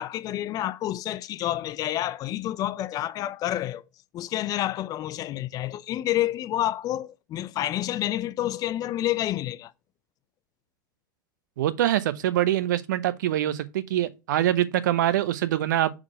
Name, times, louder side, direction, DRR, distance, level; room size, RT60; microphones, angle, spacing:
voice 1, 0.0-3.8 4.1-9.7, left 13 dB, 35° left, 0.5 m, -29 dB
voice 2, 11.6-15.9, right 12 dB, 65° right, 0.8 m, -24 dB
6.2 x 3.9 x 4.8 m
figure-of-eight pair, 85°, 11 cm